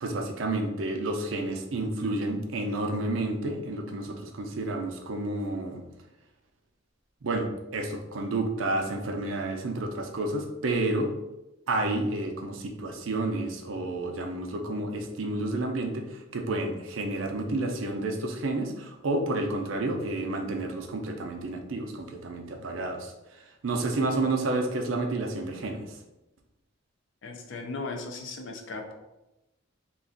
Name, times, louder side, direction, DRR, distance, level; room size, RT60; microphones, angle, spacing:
voice 1, 0.0-5.8 7.2-7.5 7.7-11.1 11.7-23.1 23.6-25.9, right 2 dB, 80° right, 4 dB, 0.5 m, -30 dB
voice 2, 27.2-28.9, left 3 dB, 65° left, 3 dB, 0.5 m, -37 dB
2.4 x 2.3 x 3.7 m, 0.96 s
head